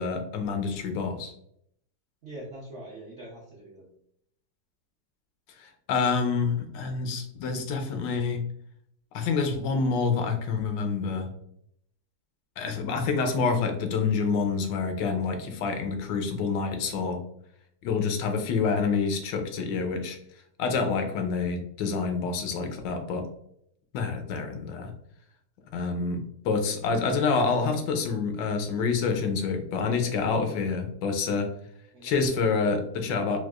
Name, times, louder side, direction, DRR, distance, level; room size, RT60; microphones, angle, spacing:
voice 1, 0.0-1.3 5.6-8.4 9.1-11.3 12.6-17.2 17.8-20.2 20.6-23.3 23.9-24.9 25.7-31.5 32.0-33.4, left 4 dB, 85° left, 6 dB, 1.3 m, -27 dB
voice 2, 2.2-3.9 31.9-32.3, right 1 dB, 65° right, -4 dB, 0.7 m, -43 dB
4.5 x 2.3 x 2.3 m, 0.72 s
omnidirectional pair, 1.9 m